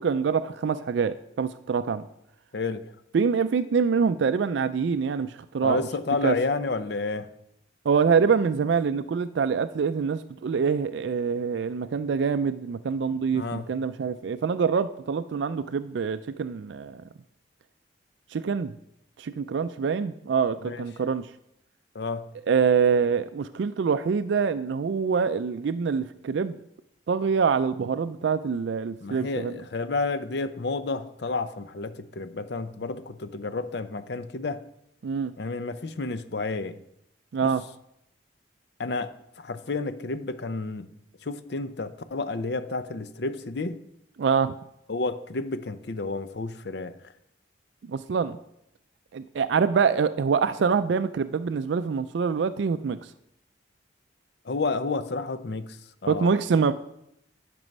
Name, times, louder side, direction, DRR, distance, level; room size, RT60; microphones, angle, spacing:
voice 1, 0.0-2.1 3.1-5.8 6.2-6.4 7.9-17.0 18.3-18.7 19.2-21.3 22.5-26.6 27.1-29.5 35.0-35.3 37.3-37.6 44.2-44.5 47.8-48.4 49.1-53.0 56.1-56.7, right 6 dB, 70° right, 12 dB, 0.3 m, -25 dB
voice 2, 2.5-2.8 5.6-7.3 13.3-13.7 20.6-20.8 21.9-22.2 29.0-34.6 35.4-36.8 37.4-37.5 38.8-40.9 41.2-43.8 44.9-47.1 54.4-56.3, left 3 dB, 60° left, 12 dB, 0.6 m, -31 dB
11.0 x 6.1 x 5.3 m, 0.79 s
head